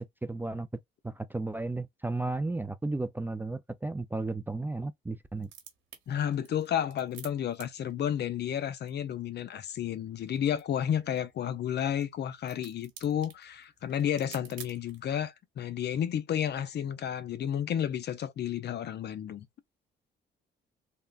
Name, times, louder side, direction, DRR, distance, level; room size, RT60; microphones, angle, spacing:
voice 1, 0.2-0.7 1.0-5.5, right 2 dB, 10° right, 0.3 m, -34 dB
sound 1, 5.3-15.1, right 8 dB, 80° right, 1.1 m, -53 dB
voice 2, 6.1-19.5, left 9 dB, 60° left, 0.5 m, -31 dB
3.6 x 2.1 x 2.4 m
cardioid pair, 90°, 20 cm